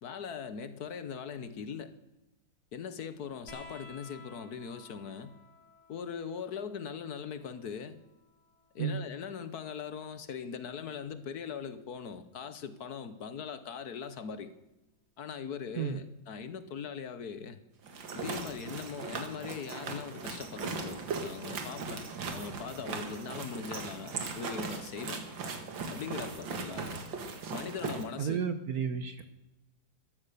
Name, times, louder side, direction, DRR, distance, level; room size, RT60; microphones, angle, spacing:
voice 1, 0.0-2.0 2.7-5.4 5.9-8.0 8.7-14.5 15.2-17.6 18.1-25.2 25.9-26.9 27.5-28.4, left 6 dB, 60° left, 12 dB, 1.4 m, -40 dB
sound 1, 3.5-10.5 11.9-12.7 14.0-14.1, left 3 dB, 15° left, 3.4 m, -56 dB
sound 2, 17.8-28.1, right 4 dB, 75° right, 2.4 m, -38 dB
voice 2, 28.2-29.4, right 7 dB, 55° right, 9 dB, 1.3 m, -32 dB
14.0 x 12.5 x 6.8 m, 0.95 s
omnidirectional pair, 2.1 m